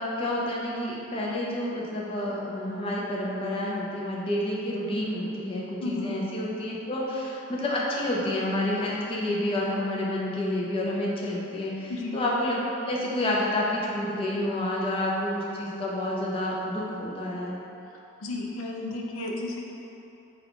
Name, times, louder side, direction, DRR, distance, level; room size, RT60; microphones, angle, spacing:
voice 1, 0.0-12.6 12.9-17.6, left 1 dB, 25° left, -4 dB, 0.5 m, -29 dB
voice 2, 5.8-6.1 11.9-12.2 18.2-19.7, left 2 dB, 80° left, -1 dB, 0.5 m, -33 dB
5.3 x 2.4 x 3.5 m, 3.0 s
head